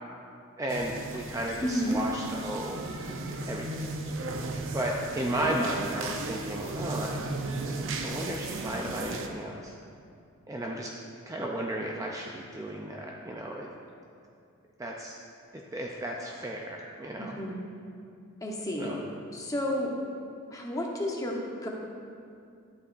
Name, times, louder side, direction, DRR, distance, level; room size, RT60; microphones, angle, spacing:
voice 1, 0.6-2.8 3.5-4.0 4.7-7.2 7.6-7.7 8.0-9.7 10.5-10.9 11.3-13.7 14.8-15.1 15.7-17.4 18.7-19.0, right 1 dB, 15° right, -1 dB, 0.4 m, -34 dB
sound 1, 0.7-9.3, right 2 dB, 60° right, 0.6 m, -36 dB
voice 2, 1.6-2.0 5.3-5.6 17.2-17.6 18.4-19.0 19.3-19.9 20.5-21.4 21.6-21.7, equal, 15° left, -1 dB, 0.9 m, -31 dB
11.0 x 8.2 x 2.5 m, 2.4 s
head